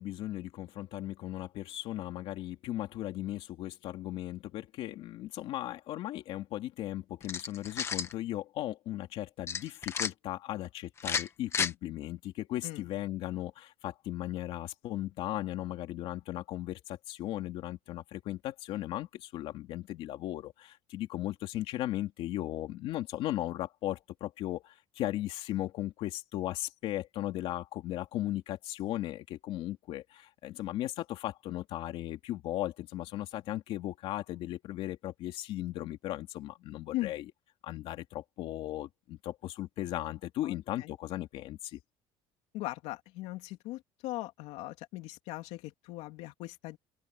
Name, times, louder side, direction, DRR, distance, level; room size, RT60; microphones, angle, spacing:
voice 1, 0.0-37.2 37.6-41.8, left 14 dB, 55° left, 2.8 m, -37 dB
sound 1, 7.2-8.1 9.5-10.1 11.0-11.7, left 6 dB, 25° left, 1.5 m, -32 dB
voice 2, 40.4-40.9 42.5-46.8, left 17 dB, 80° left, 2.9 m, -39 dB
open air
cardioid pair, 170°, 11 cm